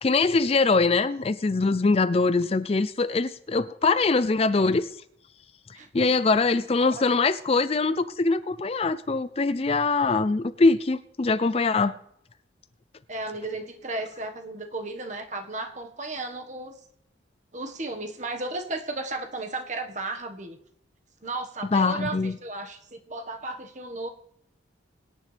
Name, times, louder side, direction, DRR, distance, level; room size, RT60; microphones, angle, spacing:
voice 1, 0.0-4.9 5.9-11.9 21.7-22.4, left 3 dB, 30° left, 0.4 m, -23 dB
voice 2, 5.7-6.1 6.9-7.0 13.1-16.8 17.5-20.6 21.2-24.1, right 2 dB, 35° right, 1.5 m, -34 dB
23.5 x 10.0 x 3.4 m
head